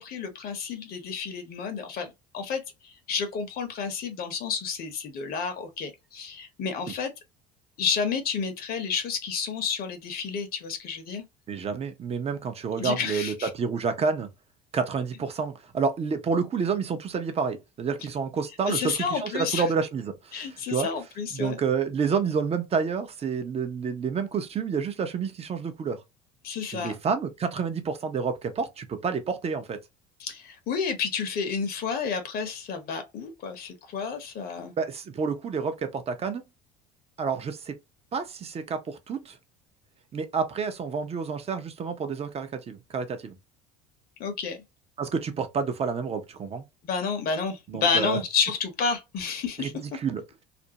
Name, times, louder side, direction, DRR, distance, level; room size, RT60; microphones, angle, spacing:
voice 1, 0.0-2.1 2.3-7.1 7.8-11.2 12.8-13.5 18.7-19.6 20.3-21.6 26.4-26.9 30.2-34.7 44.2-44.6 46.8-50.0, left 6 dB, 50° left, 0.8 m, -30 dB
voice 2, 11.5-14.3 14.7-20.9 21.3-26.0 26.7-29.8 34.8-36.4 37.2-37.8 38.1-39.4 40.1-43.4 45.0-46.6 47.7-48.2 49.6-50.2, right 5 dB, 30° right, 0.6 m, -29 dB
2.5 x 2.1 x 2.8 m
supercardioid pair, 90°, 20 cm